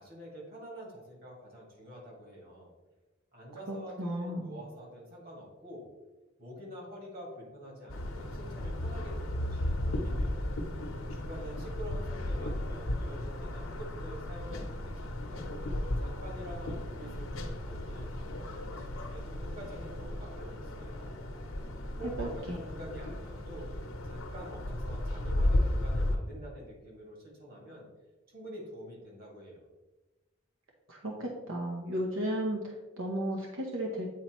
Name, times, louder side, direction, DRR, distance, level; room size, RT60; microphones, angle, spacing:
voice 1, 0.0-2.7 3.3-5.9 6.4-10.4 11.1-15.5 16.0-21.2 22.0-23.7 24.0-27.9 28.3-29.6, equal, 45° right, -2 dB, 2.0 m, -47 dB
voice 2, 3.7-4.5 22.2-22.3 30.9-34.1, right 1 dB, 85° right, 0 dB, 0.9 m, -34 dB
sound 1, 7.9-26.2, left 1 dB, 80° left, 0.8 m, -34 dB
8.6 x 4.3 x 3.0 m, 1.1 s
head